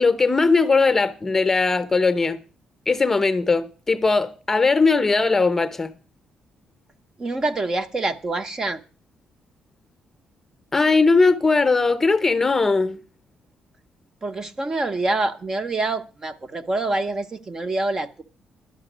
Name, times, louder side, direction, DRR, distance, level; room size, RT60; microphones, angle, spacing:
voice 1, 0.0-2.4 2.9-5.9 10.7-13.0, left 4 dB, 15° left, 0.8 m, -19 dB
voice 2, 7.2-8.8 14.2-18.2, right 2 dB, 25° right, 0.7 m, -26 dB
12.0 x 5.8 x 9.1 m
cardioid pair, 150°, 2 cm